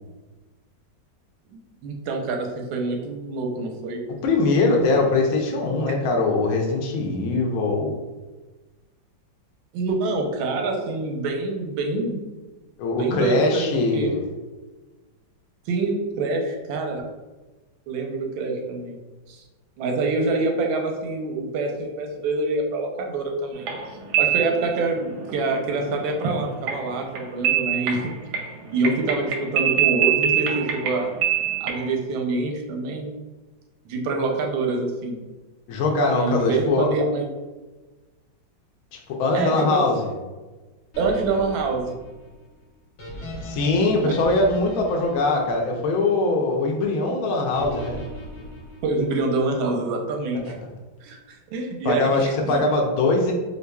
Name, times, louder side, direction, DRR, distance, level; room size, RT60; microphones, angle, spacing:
voice 1, 1.5-4.0 9.7-12.3 12.9-13.7 13.9-14.1 15.7-17.0 17.9-19.0 19.3-19.4 19.8-23.8 24.2-28.0 28.7-31.1 31.6-33.1 33.9-35.2 36.1-37.3 39.3-39.8 41.0-42.0 44.0-44.2 48.8-50.5 51.0-52.7, right 3 dB, 90° right, 2 dB, 1.4 m, -26 dB
voice 2, 4.2-7.9 12.8-14.3 35.7-36.9 38.9-40.1 43.4-48.0 50.4-50.5 51.8-53.3, left 3 dB, 70° left, 1 dB, 0.8 m, -22 dB
sound 1, 23.6-32.0, right 9 dB, 75° right, 1.0 m, -25 dB
sound 2, 40.9-46.2 47.5-49.4, left 1 dB, 50° left, 1.0 m, -39 dB
4.5 x 2.6 x 2.2 m, 1.2 s
omnidirectional pair, 2.1 m